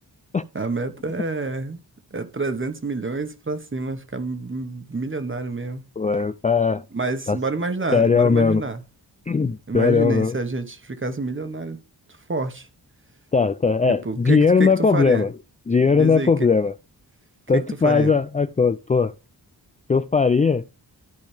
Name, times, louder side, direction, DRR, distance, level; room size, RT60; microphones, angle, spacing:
voice 1, 0.5-1.8 2.1-5.8 6.9-8.8 9.7-11.8 12.3-12.7 13.9-15.3 15.9-16.5 17.5-18.1, right 3 dB, 30° right, 1.3 m, -28 dB
voice 2, 6.0-6.8 7.3-7.4 7.9-8.6 9.3-10.3 13.3-15.3 15.7-16.7 17.5-19.1 19.9-20.6, left 5 dB, 20° left, 0.3 m, -19 dB
13.0 x 5.2 x 3.4 m
wide cardioid pair, 110°, 40 cm